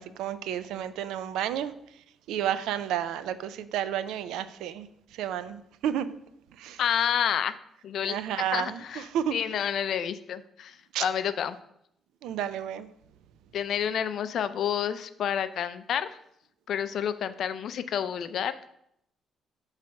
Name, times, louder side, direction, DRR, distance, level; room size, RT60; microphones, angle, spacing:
voice 1, 0.0-1.7 2.3-4.9 5.2-6.1 6.6-6.8 8.1-8.8 9.1-9.3 10.9-11.1 12.2-12.9, right 10 dB, 90° right, 13 dB, 0.4 m, -31 dB
voice 2, 6.8-7.5 7.8-8.2 8.5-11.6 13.5-16.2 16.7-18.5, left 9 dB, 70° left, 12 dB, 0.4 m, -29 dB
6.2 x 3.2 x 5.7 m, 0.75 s
cardioid pair, 90°, 0 cm